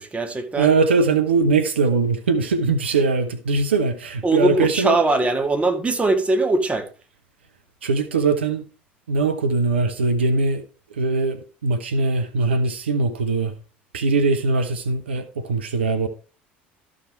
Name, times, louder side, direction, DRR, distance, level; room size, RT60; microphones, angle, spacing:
voice 1, 0.0-0.7 4.2-6.9, right 2 dB, 20° right, 1.8 m, -21 dB
voice 2, 0.6-4.9 7.8-8.6 9.1-10.6 10.9-13.5 13.9-16.1, right 4 dB, 85° right, 0.9 m, -21 dB
13.0 x 5.0 x 4.5 m
hypercardioid pair, 70°, 6 cm